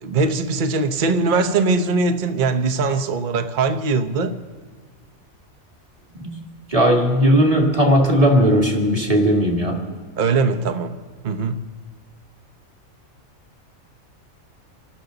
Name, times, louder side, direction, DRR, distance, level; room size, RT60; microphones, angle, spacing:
voice 1, 0.0-4.3 10.2-11.6, right 3 dB, 40° right, 8 dB, 0.9 m, -21 dB
voice 2, 6.7-9.8, equal, 25° right, 0 dB, 2.4 m, -17 dB
28.5 x 12.0 x 3.9 m, 1.5 s
omnidirectional pair, 1.4 m